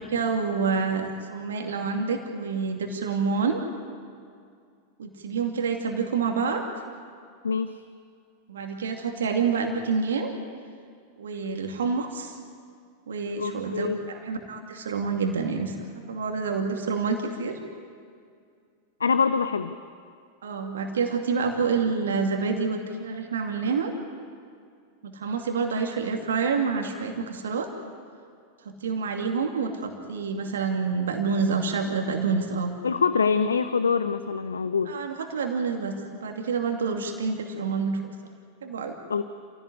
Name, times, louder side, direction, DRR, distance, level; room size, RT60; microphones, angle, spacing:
voice 1, 0.0-3.6 5.0-6.6 8.5-10.3 11.2-12.3 13.1-17.6 20.4-23.9 25.0-27.7 28.6-32.7 34.8-38.1 38.6-39.0, right 5 dB, 65° right, 4 dB, 2.5 m, -28 dB
voice 2, 7.4-7.8 13.4-14.0 19.0-19.8 32.8-35.0 39.1-39.2, left 5 dB, 70° left, 12 dB, 0.7 m, -25 dB
27.5 x 17.0 x 9.7 m, 2.3 s
figure-of-eight pair, 90°, 0 cm